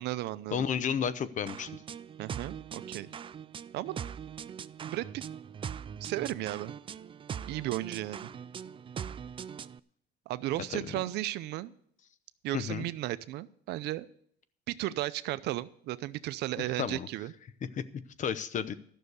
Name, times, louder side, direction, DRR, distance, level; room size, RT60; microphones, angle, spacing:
voice 1, 0.0-0.7 2.2-3.1 3.7-4.0 4.8-5.2 6.0-6.7 7.5-8.3 10.3-11.7 12.4-14.1 14.7-17.3, right 16 dB, 80° right, 15 dB, 0.6 m, -35 dB
voice 2, 0.5-1.7 10.7-10.8 12.5-12.9 16.8-17.1 17.7-18.7, left 7 dB, 45° left, 14 dB, 0.8 m, -32 dB
sound 1, 1.5-9.8, right 8 dB, 30° right, 0.4 m, -41 dB
12.5 x 6.5 x 8.1 m, 0.63 s
cardioid pair, 110°, 17 cm